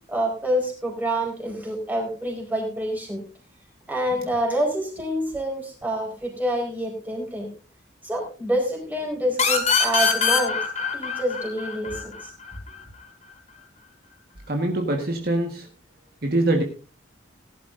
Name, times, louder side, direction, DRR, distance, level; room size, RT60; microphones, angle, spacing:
voice 1, 0.1-3.2 3.9-7.5 8.0-10.6 10.9-12.3, equal, 10° right, 0 dB, 4.4 m, -27 dB
sound 1, 9.4-12.8, left 5 dB, 35° left, 3.5 m, -23 dB
voice 2, 14.5-15.7 16.2-16.6, right 1 dB, 50° right, 2 dB, 1.5 m, -23 dB
18.0 x 11.5 x 2.6 m, 0.36 s
head